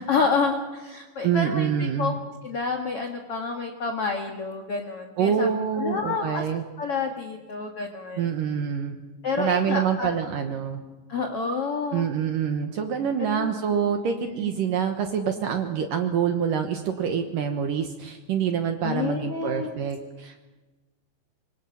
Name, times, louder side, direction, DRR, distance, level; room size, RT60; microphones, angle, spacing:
voice 1, 0.0-1.7 2.0-2.1 2.4-5.5 5.8-6.4 6.8-8.3 9.2-10.1 11.1-12.1 13.3-13.5 14.2-14.5 18.8-19.7, left 4 dB, 65° left, 3 dB, 1.4 m, -28 dB
voice 2, 1.2-2.2 5.2-6.6 8.2-9.0 9.4-10.8 11.9-20.4, right 7 dB, 65° right, 5 dB, 2.3 m, -26 dB
25.0 x 25.0 x 5.8 m, 1.2 s
omnidirectional pair, 5.2 m